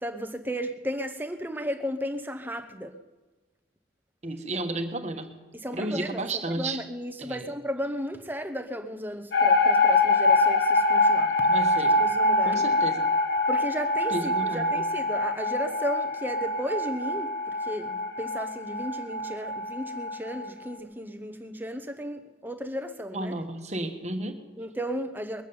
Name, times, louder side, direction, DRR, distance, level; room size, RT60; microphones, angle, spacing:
voice 1, 0.0-2.9 5.6-11.3 12.0-12.6 13.5-17.3 17.6-23.3 24.6-25.4, equal, 10° right, 7 dB, 0.9 m, -34 dB
voice 2, 4.2-5.3 5.7-6.8 7.2-7.5 11.4-12.0 12.4-13.1 14.1-14.9 23.1-24.4, right 2 dB, 35° right, 6 dB, 1.3 m, -32 dB
sound 1, 9.3-20.5, left 2 dB, 80° left, 1.6 m, -24 dB
21.0 x 7.2 x 8.6 m, 1.2 s
head